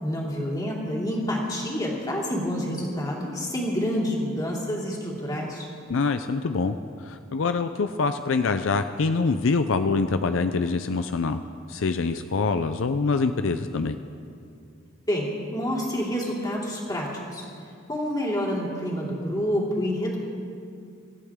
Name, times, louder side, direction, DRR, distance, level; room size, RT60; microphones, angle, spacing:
voice 1, 0.0-5.7 15.1-17.5 17.9-20.2, equal, 20° left, -3 dB, 2.9 m, -28 dB
voice 2, 5.9-11.4 11.7-14.0, left 4 dB, 70° left, 9 dB, 0.5 m, -25 dB
25.5 x 13.5 x 3.7 m, 2.5 s
head